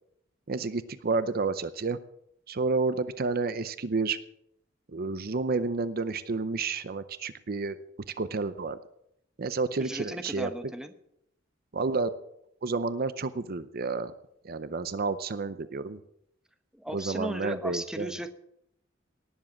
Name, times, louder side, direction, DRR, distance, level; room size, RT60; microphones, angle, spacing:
voice 1, 0.5-2.0 2.5-4.2 4.9-7.8 8.2-8.8 9.4-10.5 11.7-12.1 12.6-14.1 14.4-16.0 16.9-18.1, right 4 dB, 50° right, 14 dB, 0.6 m, -30 dB
voice 2, 9.8-10.9 16.7-18.3, equal, 5° right, 8 dB, 1.0 m, -36 dB
18.5 x 7.5 x 7.1 m, 0.76 s
head